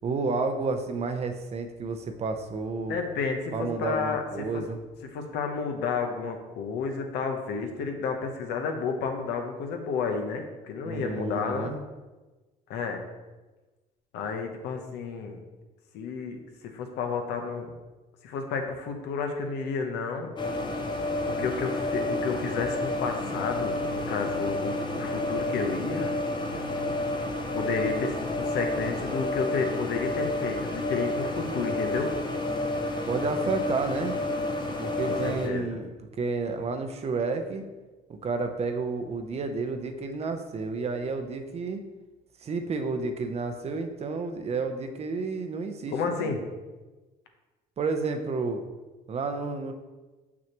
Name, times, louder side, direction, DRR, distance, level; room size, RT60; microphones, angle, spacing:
voice 1, 0.0-3.0 3.5-4.8 10.8-11.8 33.1-34.2 34.8-37.6 38.1-41.8 42.4-46.3 47.8-48.6 49.1-49.7, right 4 dB, 40° right, 6 dB, 0.7 m, -31 dB
voice 2, 2.9-4.6 5.0-11.7 12.7-13.0 14.1-15.4 15.9-17.7 18.2-20.3 21.3-26.1 27.5-32.1 35.1-35.8 45.9-46.4, left 5 dB, 85° left, 4 dB, 0.9 m, -31 dB
sound 1, 20.4-35.5, left 2 dB, 25° left, 0.6 m, -30 dB
6.2 x 6.0 x 3.0 m, 1.2 s
cardioid pair, 110°, 17 cm